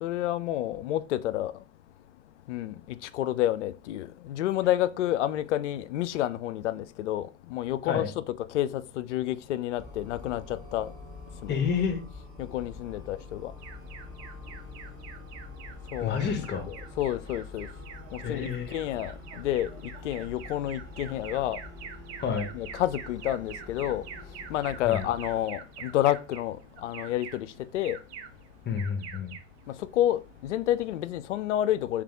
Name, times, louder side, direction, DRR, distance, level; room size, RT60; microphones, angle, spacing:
voice 1, 0.0-1.5 2.5-8.2 8.5-10.4 10.7-10.9 11.4-11.5 12.4-13.5 15.9-16.4 17.0-17.7 18.3-19.7 20.0-21.6 22.5-24.0 24.5-27.5 27.7-28.0 29.9-32.0, left 13 dB, 65° left, 0.5 m, -29 dB
sound 1, 9.8-25.4, left 3 dB, 10° right, 2.1 m, -45 dB
voice 2, 11.5-12.0 16.0-16.7 18.2-18.8 22.2-22.5 24.8-25.0 28.6-29.3, left 6 dB, 25° left, 1.0 m, -29 dB
Alarm, 13.6-31.2, right 7 dB, 50° right, 0.7 m, -46 dB
3.3 x 3.2 x 3.6 m
figure-of-eight pair, 90°, 39 cm